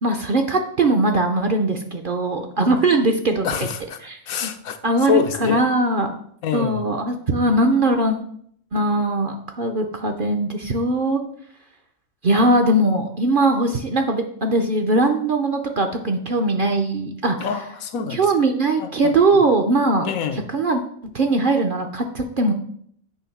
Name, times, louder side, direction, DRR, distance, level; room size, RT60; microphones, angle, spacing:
voice 1, 0.0-3.7 4.0-4.5 4.8-6.1 6.5-8.2 8.7-11.2 12.2-17.4 18.1-20.1 20.5-20.8 21.1-22.5, right 2 dB, 50° right, 0.6 m, -20 dB
voice 2, 3.4-4.0 4.3-4.8 5.1-5.6 6.4-6.9 17.4-18.3 18.8-19.4 20.0-20.4, left 8 dB, 85° left, 1.2 m, -26 dB
8.3 x 3.4 x 5.8 m
omnidirectional pair, 1.4 m